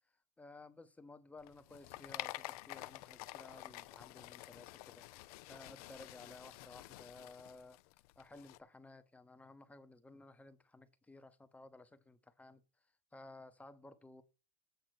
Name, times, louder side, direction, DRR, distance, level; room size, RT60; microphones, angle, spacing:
voice 1, 0.4-7.8 8.2-14.2, left 2 dB, 5° left, 0.7 m, -56 dB
sound 1, 1.4-8.6, left 19 dB, 80° left, 0.4 m, -49 dB
7.9 x 3.9 x 6.0 m
supercardioid pair, 135°, 19 cm